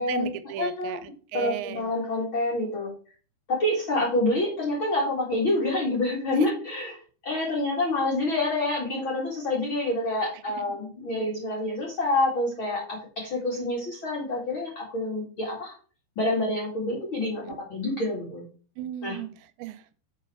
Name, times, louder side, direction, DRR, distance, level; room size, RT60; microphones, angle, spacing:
voice 1, 0.0-1.9 6.4-6.5 10.3-10.8 17.4-17.6 18.8-19.9, right 13 dB, 85° right, 12 dB, 2.8 m, -36 dB
voice 2, 0.6-1.0 1.3-2.9 3.5-6.9 7.2-15.7 16.2-18.4 19.0-19.2, left 2 dB, 40° left, -3 dB, 2.0 m, -27 dB
7.8 x 4.2 x 5.6 m, 0.40 s
omnidirectional pair, 5.1 m